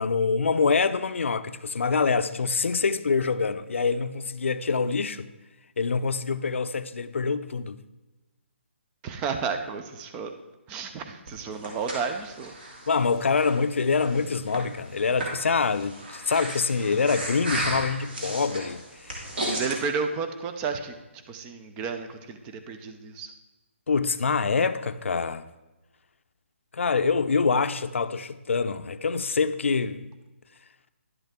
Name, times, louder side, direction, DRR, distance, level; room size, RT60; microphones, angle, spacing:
voice 1, 0.0-5.3 5.8-7.8 12.9-19.2 23.9-25.4 26.7-30.1, left 5 dB, 75° left, 0.6 m, -25 dB
voice 2, 9.0-10.3 10.7-12.5 19.4-21.0 21.3-23.3, right 5 dB, 10° right, 0.5 m, -32 dB
Breathing, 11.3-19.8, right 1 dB, 50° right, 2.7 m, -35 dB
11.0 x 7.9 x 3.6 m
hypercardioid pair, 165°, 7 cm